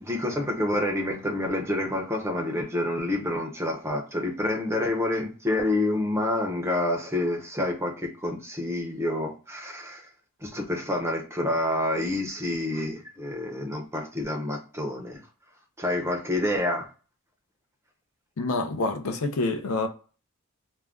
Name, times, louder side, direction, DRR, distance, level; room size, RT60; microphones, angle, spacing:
voice 1, 0.0-10.1 10.4-15.2 15.8-16.9, left 1 dB, 10° right, 0.5 m, -28 dB
voice 2, 18.4-19.9, left 3 dB, 80° left, 0.5 m, -27 dB
2.4 x 2.1 x 3.4 m
head